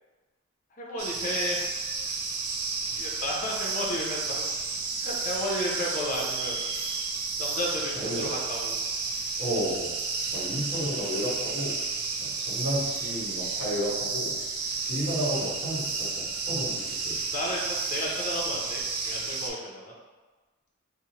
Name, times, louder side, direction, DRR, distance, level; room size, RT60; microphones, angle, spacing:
voice 1, 0.8-1.7 2.9-4.5 5.0-6.6 7.4-8.8 17.3-19.9, left 1 dB, 40° left, -2 dB, 0.5 m, -33 dB
sound 1, 1.0-19.5, right 4 dB, 80° right, 0.4 m, -32 dB
voice 2, 7.9-8.3 9.4-9.9 10.3-11.7 12.2-14.3 14.8-17.1, equal, 45° right, -9 dB, 1.1 m, -32 dB
2.6 x 2.0 x 2.8 m, 1.3 s
head